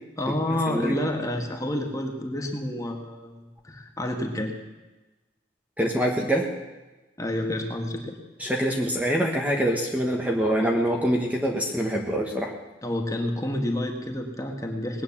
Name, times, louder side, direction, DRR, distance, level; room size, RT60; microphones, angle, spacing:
voice 1, 0.2-4.5 7.2-8.2 12.8-15.0, left 1 dB, 20° left, 2 dB, 1.8 m, -29 dB
voice 2, 5.8-6.5 8.4-12.5, equal, 10° right, 0 dB, 1.4 m, -25 dB
20.0 x 9.1 x 7.3 m, 1.1 s
head